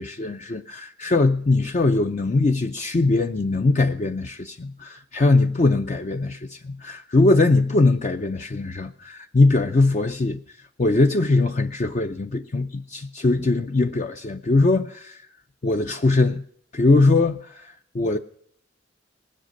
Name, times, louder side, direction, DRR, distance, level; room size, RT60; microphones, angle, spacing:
voice 1, 0.0-10.4 10.8-15.2 15.6-16.4 16.7-18.2, left 2 dB, 40° left, 0.5 m, -21 dB
20.0 x 7.7 x 6.4 m
head